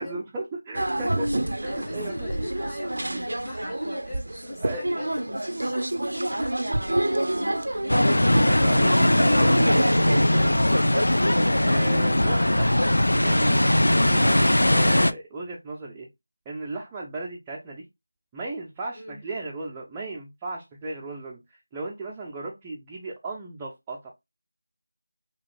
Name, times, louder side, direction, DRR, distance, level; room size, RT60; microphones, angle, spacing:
voice 1, 0.0-2.3 4.6-4.9 8.3-11.1 11.6-12.9 13.2-16.1 16.5-17.8 18.3-24.1, right 2 dB, 10° right, 0.4 m, -36 dB
sound 1, 0.7-10.3, right 1 dB, 75° right, 0.5 m, -28 dB
voice 2, 1.7-8.0 14.0-14.4 18.9-19.2, left 1 dB, 10° left, 1.1 m, -41 dB
sound 2, 7.9-15.1, left 1 dB, 85° left, 0.3 m, -20 dB
3.7 x 2.4 x 3.1 m
figure-of-eight pair, 170°, 0 cm